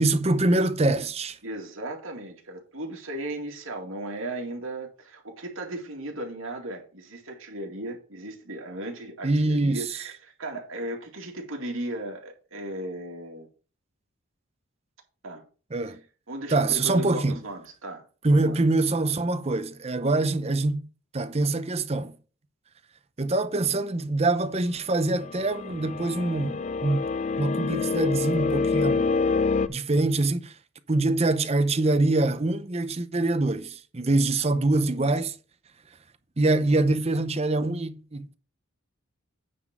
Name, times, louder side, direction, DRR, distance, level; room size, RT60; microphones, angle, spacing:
voice 1, 0.0-1.4 9.2-9.9 15.7-16.0 16.5-17.4 18.2-20.8 21.1-22.1 23.2-27.1 27.4-29.2 29.7-30.6 30.9-35.4 36.4-38.3, right 2 dB, 30° right, 0.7 m, -24 dB
voice 2, 1.4-13.5 15.2-15.4 15.8-16.0 16.3-18.6, right 1 dB, 80° right, 2.3 m, -36 dB
sound 1, 25.2-29.7, left 4 dB, 35° left, 0.3 m, -27 dB
9.2 x 4.0 x 6.0 m
head